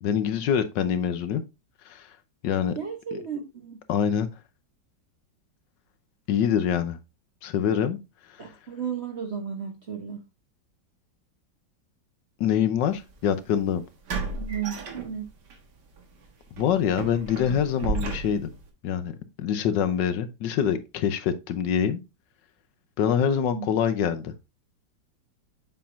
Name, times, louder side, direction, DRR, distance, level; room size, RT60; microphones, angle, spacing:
voice 1, 0.0-1.4 1.9-2.1 2.4-2.7 3.9-4.3 6.3-7.0 7.4-8.0 12.4-13.8 16.6-18.5 18.8-19.1 19.4-22.0 23.0-24.3, left 8 dB, 75° left, 1.3 m, -25 dB
voice 2, 2.7-3.8 8.4-10.2 14.1-15.3 23.3-23.7, right 7 dB, 45° right, 0.9 m, -34 dB
sound 1, 13.0-13.1 14.1-15.5 15.9-16.1 16.6-18.7, right 4 dB, 60° right, 1.9 m, -33 dB
7.4 x 5.7 x 2.5 m
omnidirectional pair, 2.1 m